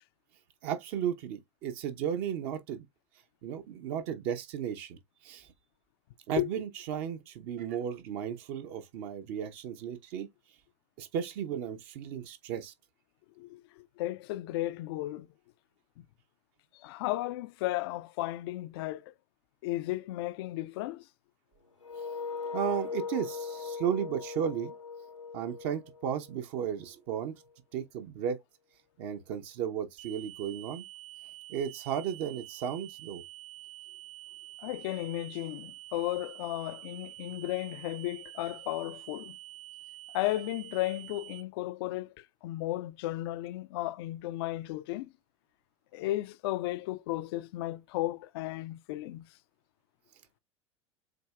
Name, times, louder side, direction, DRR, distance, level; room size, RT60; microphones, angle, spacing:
voice 1, 0.6-2.9 3.4-5.5 6.3-10.3 11.0-12.7 22.5-24.7 25.3-27.4 27.7-28.4 29.0-30.8 31.5-33.2, right 8 dB, 55° right, 0.8 m, -34 dB
voice 2, 13.4-15.3 16.8-19.1 19.6-21.0 34.6-39.4 40.1-45.1 45.9-49.3, left 16 dB, 55° left, 0.4 m, -34 dB
sound 1, 21.8-26.6, left 5 dB, 90° left, 1.0 m, -39 dB
sound 2, 30.0-41.4, right 17 dB, 70° right, 2.2 m, -48 dB
7.6 x 2.8 x 2.3 m
figure-of-eight pair, 80°, 15 cm